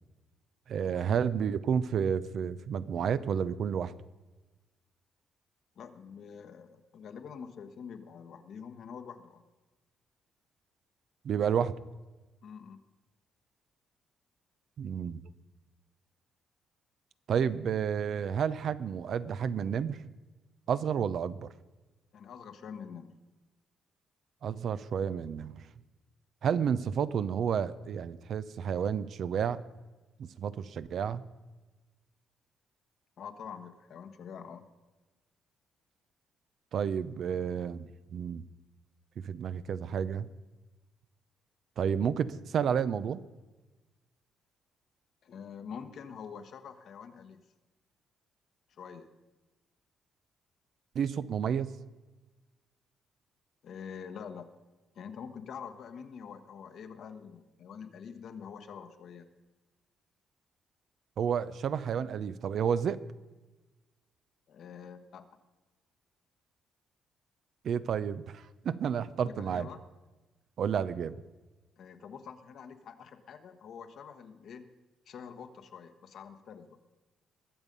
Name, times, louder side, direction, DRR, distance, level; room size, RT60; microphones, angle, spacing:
voice 1, 0.7-3.9 11.2-11.7 14.8-15.2 17.3-20.0 20.7-21.5 24.4-25.5 26.4-29.6 30.2-31.2 36.7-38.4 39.2-40.3 41.8-43.2 50.9-51.7 61.2-63.0 67.6-69.7 70.6-71.1, right 7 dB, 65° right, 14 dB, 0.6 m, -31 dB
voice 2, 5.8-9.4 12.4-12.8 22.1-23.1 33.2-34.7 45.2-47.4 48.8-49.1 53.6-54.5 54.9-59.3 64.5-65.3 69.2-69.8 71.8-74.7 75.1-76.8, left 7 dB, 65° left, 8 dB, 1.2 m, -46 dB
21.5 x 7.2 x 5.3 m, 1.2 s
cardioid pair, 90°, 0 cm